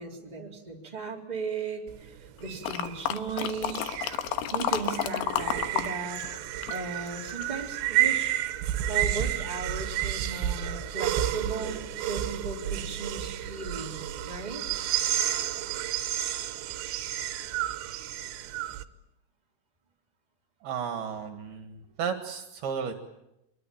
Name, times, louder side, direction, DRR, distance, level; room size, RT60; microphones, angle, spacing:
voice 1, 0.0-3.9 4.5-6.2 6.7-8.3 8.9-14.0 14.3-14.6, right 4 dB, 10° right, -1 dB, 3.4 m, -36 dB
sound 1, 1.9-18.8, right 12 dB, 90° right, 3.3 m, -31 dB
sound 2, 2.6-5.9 6.2-7.6 8.1-8.2, left 11 dB, 85° left, 3.4 m, -31 dB
voice 2, 20.6-22.9, right 7 dB, 65° right, 6 dB, 3.5 m, -33 dB
25.0 x 22.0 x 8.9 m, 0.87 s
omnidirectional pair, 4.9 m